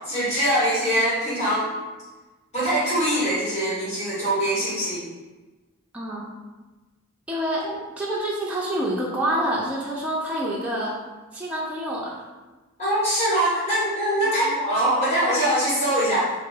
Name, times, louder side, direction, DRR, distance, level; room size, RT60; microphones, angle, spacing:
voice 1, 0.0-1.7 2.5-5.0 7.6-7.7 12.8-16.3, right 1 dB, 30° left, -9 dB, 1.1 m, -23 dB
voice 2, 5.9-6.3 7.3-7.7 8.0-11.0 11.3-12.3 14.2-14.5, right 1 dB, 5° right, -5 dB, 0.3 m, -27 dB
3.0 x 2.2 x 3.1 m, 1.2 s
head